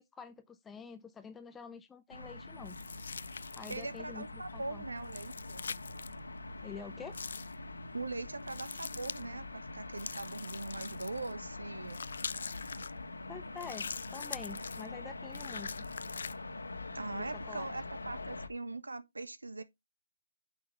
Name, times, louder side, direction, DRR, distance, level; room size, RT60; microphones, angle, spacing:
voice 1, 0.0-2.8 3.6-4.8 6.6-7.2 13.3-15.9 17.1-17.7, left 6 dB, 10° left, 0.5 m, -47 dB
sound 1, 2.1-18.5, left 2 dB, 80° left, 1.6 m, -44 dB
sound 2, 2.6-4.0 5.0-6.1 7.1-7.5 8.5-9.2 10.0-11.3 11.9-12.9 13.6-14.9 15.3-16.3, left 5 dB, 60° left, 0.4 m, -43 dB
voice 2, 3.7-5.6 7.9-12.0 16.9-19.6, right 2 dB, 75° right, 1.4 m, -41 dB
9.3 x 6.4 x 3.2 m
figure-of-eight pair, 145°, 0 cm